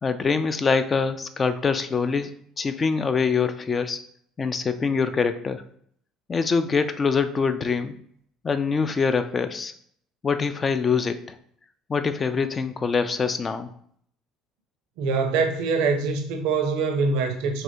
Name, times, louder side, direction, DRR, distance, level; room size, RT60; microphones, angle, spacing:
voice 1, 0.0-4.0 4.4-5.6 6.3-8.0 8.4-9.7 10.2-11.3 11.9-13.7, left 5 dB, 30° left, 0.3 m, -24 dB
voice 2, 15.0-17.6, right 4 dB, 65° right, 0.5 m, -24 dB
3.1 x 2.8 x 2.7 m
hypercardioid pair, 60°, 0 cm